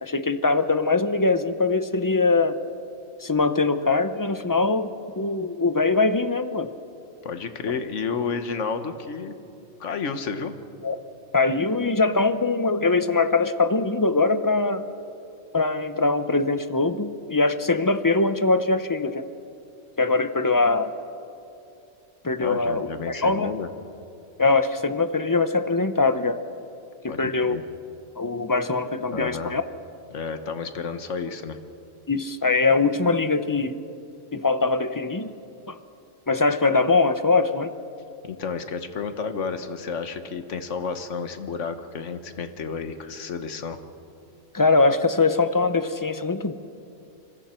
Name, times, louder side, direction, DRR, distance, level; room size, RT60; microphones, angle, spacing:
voice 1, 0.0-2.6 3.2-6.7 10.8-11.0 11.3-14.8 15.5-19.2 20.0-21.0 22.2-23.5 24.4-26.4 27.0-27.6 28.2-29.6 32.1-33.7 34.3-35.3 35.7-35.8 36.3-37.7 44.5-46.5, left 3 dB, 25° left, 11 dB, 0.5 m, -22 dB
voice 2, 7.2-9.3 9.8-10.6 22.4-23.7 27.1-27.6 29.1-29.5 30.1-31.6 38.2-43.8, left 5 dB, 75° left, 9 dB, 1.5 m, -31 dB
26.5 x 25.5 x 4.4 m, 2.7 s
omnidirectional pair, 1.3 m